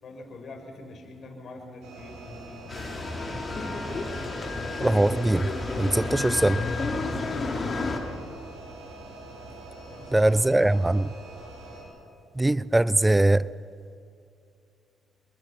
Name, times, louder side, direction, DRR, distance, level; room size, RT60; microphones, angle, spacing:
voice 1, 0.0-3.1 7.2-8.2 9.9-11.0, left 2 dB, 55° left, 5.6 m, -45 dB
sound 1, 1.8-11.8, right 2 dB, 90° right, 6.7 m, -44 dB
sound 2, 2.7-8.0, left 3 dB, 35° left, 3.6 m, -31 dB
voice 2, 4.8-6.6 10.1-11.1 12.4-13.5, right 1 dB, 10° right, 0.4 m, -22 dB
27.0 x 20.5 x 5.9 m
cardioid pair, 90°, 0 cm